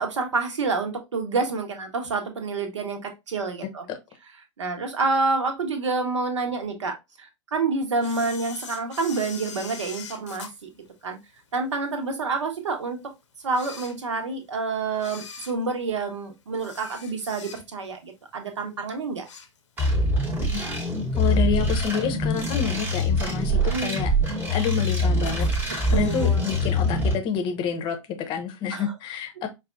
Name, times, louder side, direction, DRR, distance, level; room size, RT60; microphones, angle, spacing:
voice 1, 0.0-3.9 4.6-10.7 11.0-11.2 11.5-13.0 13.4-19.3 23.7-24.0 25.9-26.4 28.7-28.9, right 4 dB, 70° right, 0.9 m, -28 dB
Camera, 8.0-11.6 12.1-12.2 12.9-13.0 13.4-14.5 14.9-17.9 18.3-18.6 18.9-20.0 20.3-20.4 21.4-21.5 22.1-22.5 22.9-23.0 23.2-23.3 23.4-23.5 24.3-24.8 25.2-26.4 26.6-26.7 27.0-27.1, left 6 dB, 70° left, 0.8 m, -42 dB
sound 1, 19.8-27.1, left 1 dB, 15° right, 1.0 m, -24 dB
voice 2, 21.1-24.1 24.5-29.5, left 7 dB, 30° left, 0.8 m, -28 dB
5.0 x 2.4 x 2.4 m
figure-of-eight pair, 100°, 16 cm